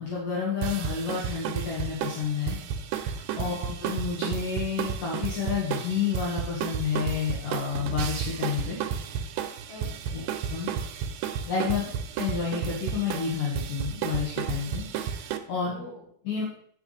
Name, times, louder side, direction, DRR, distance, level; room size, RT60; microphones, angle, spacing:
voice 1, 0.0-2.6 2.9-8.8 10.5-10.8 11.5-11.8 12.2-15.7 16.2-16.4, left 6 dB, 65° left, -5 dB, 3.1 m, -30 dB
sound 1, 0.6-15.4, right 7 dB, 85° right, 2.6 m, -32 dB
voice 2, 9.7-10.3 11.7-11.9 15.5-16.4, left 1 dB, 85° left, -6 dB, 6.0 m, -47 dB
9.8 x 7.7 x 3.3 m, 0.63 s
omnidirectional pair, 4.3 m